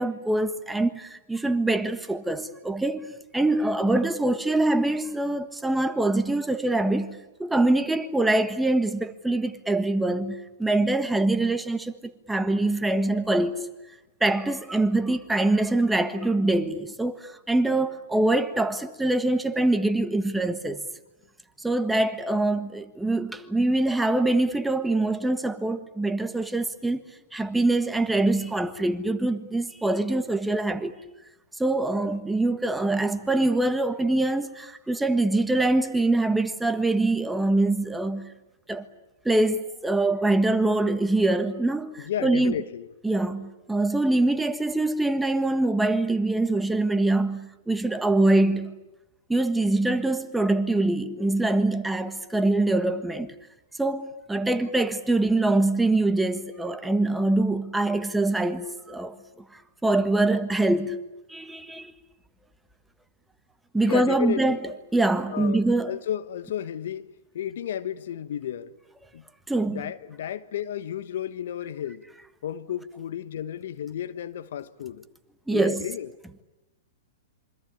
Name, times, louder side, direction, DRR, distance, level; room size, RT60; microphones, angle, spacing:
voice 1, 0.0-13.7 14.2-20.8 21.6-27.0 27.3-30.9 31.6-38.3 38.7-38.9 39.2-42.5 43.0-48.8 49.3-53.3 53.8-59.2 59.5-61.0 61.3-61.9 63.7-64.6 64.9-65.9 69.5-69.9 75.5-75.8, right 2 dB, 5° right, 1.5 m, -24 dB
voice 2, 42.0-42.9 63.8-64.6 65.3-67.1 67.3-68.7 69.1-69.2 69.7-72.0 72.4-75.0 75.5-76.1, left 10 dB, 65° left, 1.2 m, -33 dB
27.5 x 25.0 x 8.7 m
hypercardioid pair, 125°, 0 cm